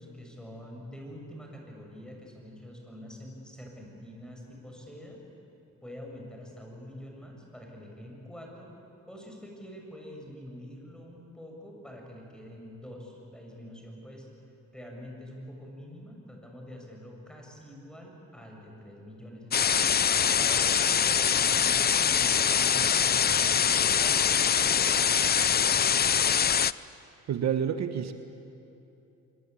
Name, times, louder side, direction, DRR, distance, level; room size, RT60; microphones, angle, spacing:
voice 1, 0.0-5.2 5.7-8.7 9.1-14.3 14.7-19.9 20.4-23.6 24.0-25.9, left 1 dB, 5° left, 0 dB, 7.3 m, -45 dB
sound 1, 19.5-26.7, left 8 dB, 30° left, 0.5 m, -23 dB
voice 2, 27.3-28.1, right 8 dB, 65° right, 9 dB, 1.2 m, -28 dB
26.5 x 22.0 x 8.5 m, 2.8 s
cardioid pair, 90°, 30 cm